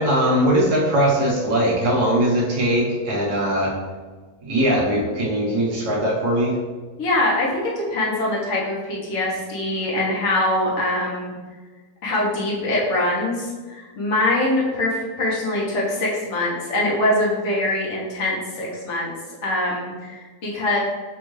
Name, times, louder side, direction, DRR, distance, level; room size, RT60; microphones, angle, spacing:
voice 1, 0.0-3.8 4.4-6.6, equal, 85° right, -4 dB, 1.7 m, -20 dB
voice 2, 7.0-7.6 7.9-11.4 12.0-13.5 13.7-19.1 19.4-20.8, left 1 dB, 50° left, -5 dB, 1.4 m, -23 dB
6.5 x 2.6 x 3.1 m, 1.4 s
omnidirectional pair, 1.7 m